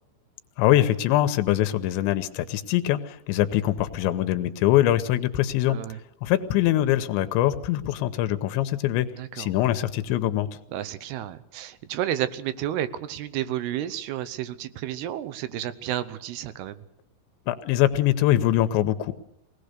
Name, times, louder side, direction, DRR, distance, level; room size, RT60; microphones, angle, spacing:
voice 1, 0.6-5.8 6.2-9.1 9.4-10.5 17.5-19.1, left 13 dB, 85° left, 11 dB, 3.2 m, -23 dB
voice 2, 5.7-6.0 9.2-9.5 10.7-16.8, right 12 dB, 75° right, 14 dB, 2.7 m, -31 dB
22.5 x 18.0 x 6.7 m, 0.82 s
omnidirectional pair, 5.1 m